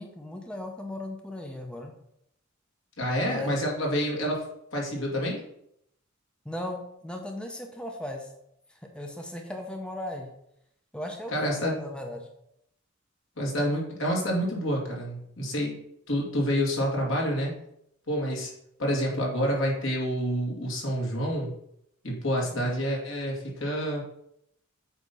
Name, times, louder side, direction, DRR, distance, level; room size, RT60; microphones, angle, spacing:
voice 1, 0.0-1.9 3.3-3.6 6.4-8.3 8.7-10.3 10.9-12.3, left 1 dB, 5° left, 2 dB, 0.7 m, -37 dB
voice 2, 3.0-4.5 4.7-5.4 11.3-11.7 13.4-15.7 16.1-17.5 18.1-18.5 18.8-21.5 22.0-24.0, equal, 70° left, -2 dB, 2.3 m, -28 dB
8.2 x 2.8 x 5.4 m, 0.75 s
head